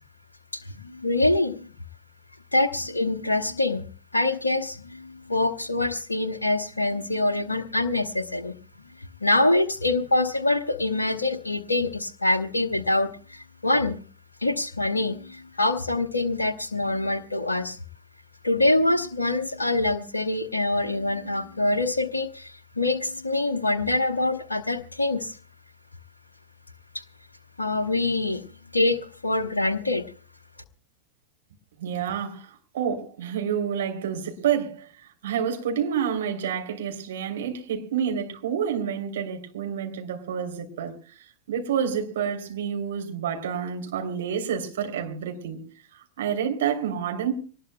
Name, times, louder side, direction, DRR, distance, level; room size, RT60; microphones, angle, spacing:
voice 1, 0.5-1.7 2.5-3.8 4.1-8.5 9.2-14.0 14.4-17.8 18.4-25.3 27.6-28.5 28.7-30.0, left 2 dB, 80° left, 1.1 m, -25 dB
voice 2, 31.8-45.6 46.2-47.3, right 8 dB, 60° right, 3.0 m, -29 dB
24.5 x 19.0 x 2.2 m
figure-of-eight pair, 90°, 0 cm